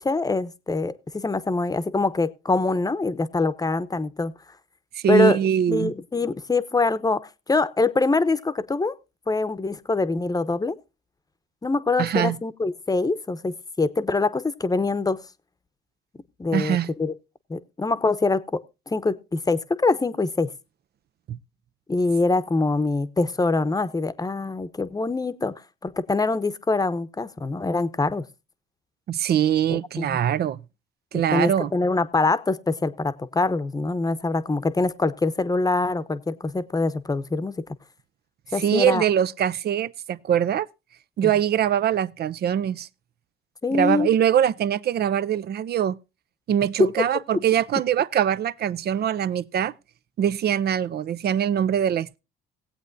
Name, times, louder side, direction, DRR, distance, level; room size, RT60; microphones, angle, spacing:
voice 1, 0.0-4.3 5.1-5.4 5.7-8.9 9.3-10.8 11.6-15.2 16.4-17.1 17.5-18.6 18.9-20.5 21.9-25.5 25.8-28.2 29.7-30.2 31.3-37.6 38.5-39.0 41.2-41.3 43.6-44.1 46.8-46.9, left 3 dB, 20° left, 0.9 m, -24 dB
voice 2, 4.9-5.9 12.0-12.4 16.5-16.9 21.3-21.4 29.1-30.6 31.1-31.7 38.6-40.7 41.2-42.9 43.7-46.0 46.5-49.7 50.2-52.2, right 9 dB, 50° right, 0.5 m, -23 dB
18.0 x 8.2 x 2.6 m
supercardioid pair, 80°, 21 cm